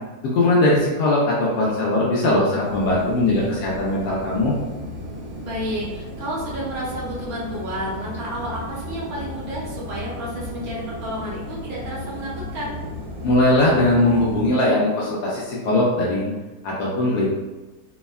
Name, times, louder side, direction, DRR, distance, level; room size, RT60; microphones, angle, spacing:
voice 1, 0.2-4.6 13.2-16.3 16.6-17.3, left 1 dB, 80° left, -5 dB, 1.1 m, -20 dB
sound 1, 2.6-14.4, left 1 dB, 85° right, 1.3 m, -35 dB
voice 2, 5.4-12.8, equal, 65° right, -6 dB, 1.3 m, -31 dB
3.5 x 2.1 x 2.3 m, 1.1 s
omnidirectional pair, 1.7 m